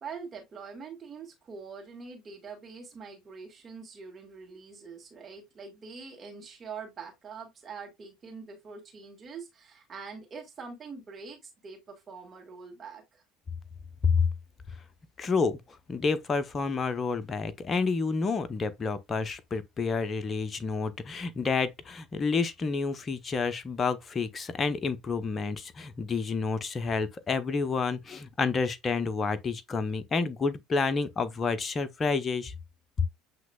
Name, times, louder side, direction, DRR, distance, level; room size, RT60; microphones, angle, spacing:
voice 1, 0.0-13.2, right 5 dB, 35° right, 1.8 m, -44 dB
voice 2, 15.2-32.5, left 4 dB, 30° left, 0.7 m, -29 dB
7.5 x 3.0 x 2.3 m
hypercardioid pair, 65°, 0 cm